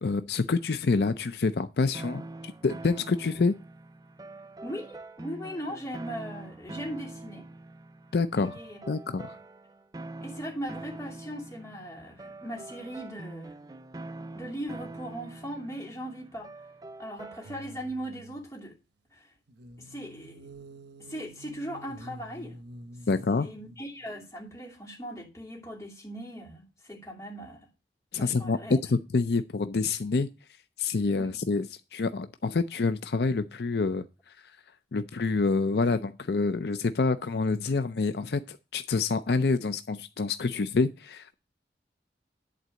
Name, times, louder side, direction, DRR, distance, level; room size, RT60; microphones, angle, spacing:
voice 1, 0.0-3.6 8.1-8.6 8.9-9.4 23.1-23.5 28.1-30.3 30.8-34.1 34.9-41.3, left 4 dB, 70° left, 0.5 m, -27 dB
sound 1, 1.9-17.9, right 2 dB, 20° right, 0.4 m, -44 dB
voice 2, 4.6-7.5 8.4-8.8 10.2-13.5 14.3-16.5 17.0-18.8 19.1-19.3 19.8-20.5 21.0-22.6 23.4-27.7 28.1-28.8 31.2-31.3, equal, 15° left, 2.8 m, -39 dB
sound 2, 17.4-18.5 19.5-24.1 24.5-24.6, right 1 dB, 85° right, 1.0 m, -48 dB
11.0 x 4.0 x 7.6 m
head